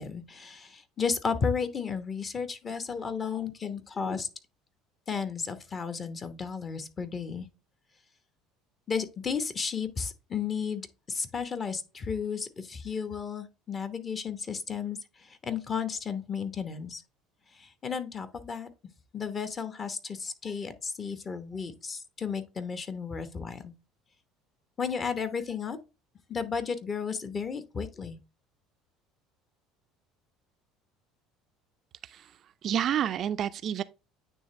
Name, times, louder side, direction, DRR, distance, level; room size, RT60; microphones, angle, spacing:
voice 1, 0.0-4.3 5.1-7.5 8.9-15.0 15.4-17.0 17.8-18.7 19.1-23.7 24.8-25.8 26.3-28.2, left 6 dB, 35° left, 1.1 m, -33 dB
voice 2, 32.6-33.8, right 9 dB, 45° right, 0.4 m, -29 dB
9.2 x 3.4 x 3.2 m
hypercardioid pair, 65°, 0 cm